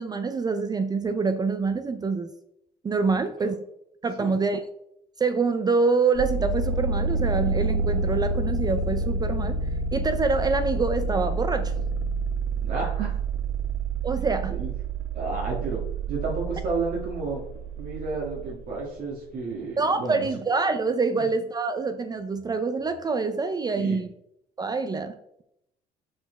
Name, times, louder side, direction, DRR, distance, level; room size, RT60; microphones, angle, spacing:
voice 1, 0.0-2.3 2.8-3.5 4.0-4.6 5.2-9.6 9.9-11.7 14.0-14.6 19.8-24.1 24.6-25.1, right 4 dB, 25° right, 9 dB, 0.4 m, -26 dB
sound 1, 6.1-18.8, right 3 dB, 80° right, 0.8 m, -28 dB
voice 2, 12.6-13.1 14.5-14.7 15.1-15.8 16.1-17.4 17.8-20.3 21.1-21.3 23.8-24.0, right 3 dB, 55° right, -4 dB, 1.7 m, -31 dB
6.3 x 4.0 x 4.4 m, 0.80 s
cardioid pair, 110°, 17 cm